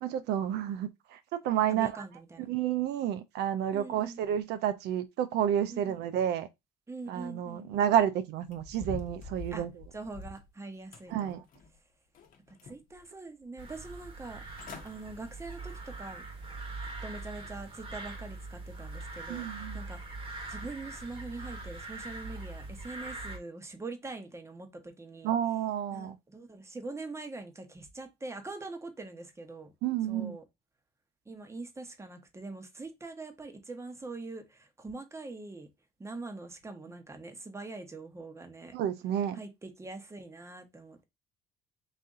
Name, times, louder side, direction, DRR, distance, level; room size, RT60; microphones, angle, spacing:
voice 1, 0.0-1.9 2.5-6.5 7.1-9.7 11.1-11.4 19.3-19.8 25.2-26.2 29.8-30.4 38.7-39.4, right 10 dB, 80° right, 0.4 m, -30 dB
voice 2, 1.7-2.5 3.7-4.2 5.7-6.0 6.9-7.9 9.5-9.6 9.9-11.3 12.5-14.4 14.8-16.3 17.0-25.3 25.9-29.7 30.1-30.4 31.3-35.7 36.0-38.7 39.3-41.0, right 3 dB, 15° right, 1.0 m, -43 dB
sound 1, 8.5-10.5 10.9-11.8 12.1-13.0 13.4-13.5 14.2-14.3 14.5-14.9 15.4-15.6 16.1-16.2, left 3 dB, 55° left, 0.9 m, -45 dB
sound 2, 13.6-23.4, right 2 dB, 35° right, 1.3 m, -42 dB
4.0 x 2.7 x 3.6 m
cardioid pair, 110°, 17 cm